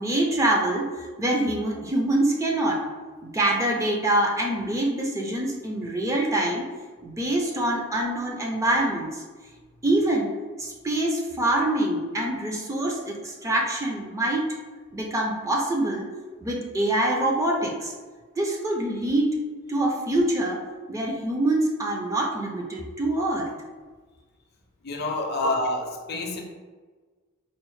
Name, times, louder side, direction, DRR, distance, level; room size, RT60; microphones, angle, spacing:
voice 1, 0.0-2.8 3.2-6.6 7.0-9.2 9.8-10.3 10.6-14.6 14.9-16.1 16.4-17.9 18.4-19.3 19.7-20.6 20.9-23.5 25.4-25.5, right 1 dB, 15° right, -1 dB, 0.4 m, -25 dB
voice 2, 24.8-26.4, left 2 dB, 50° left, 2 dB, 0.5 m, -28 dB
4.1 x 2.0 x 3.1 m, 1.4 s
head